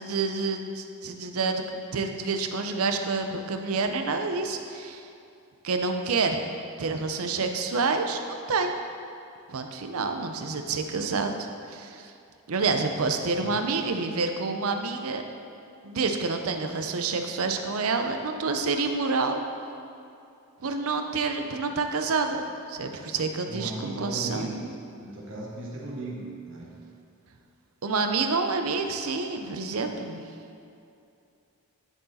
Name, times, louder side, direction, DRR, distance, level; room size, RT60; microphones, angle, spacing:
voice 1, 0.0-5.0 5.6-6.4 6.8-8.8 9.5-12.1 12.5-15.2 15.8-19.4 20.6-22.4 22.7-24.7 27.8-30.2, right 4 dB, 75° right, 6 dB, 0.6 m, -28 dB
voice 2, 23.4-24.7 25.0-26.7, right 1 dB, 60° right, -3 dB, 1.5 m, -37 dB
10.5 x 4.7 x 4.1 m, 2.6 s
head